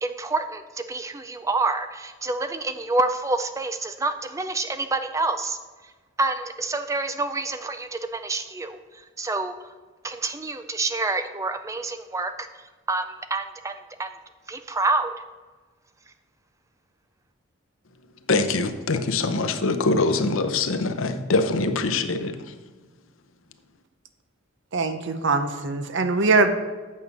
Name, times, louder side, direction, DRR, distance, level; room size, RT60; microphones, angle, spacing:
voice 1, 0.0-5.6 6.2-9.7 10.0-14.1 14.5-15.1, right 3 dB, 15° right, 9 dB, 0.3 m, -28 dB
voice 2, 18.3-22.3, left 3 dB, 70° left, 8 dB, 0.7 m, -23 dB
voice 3, 24.7-26.5, right 3 dB, 55° right, 9 dB, 0.7 m, -22 dB
8.5 x 6.8 x 5.4 m, 1.4 s
head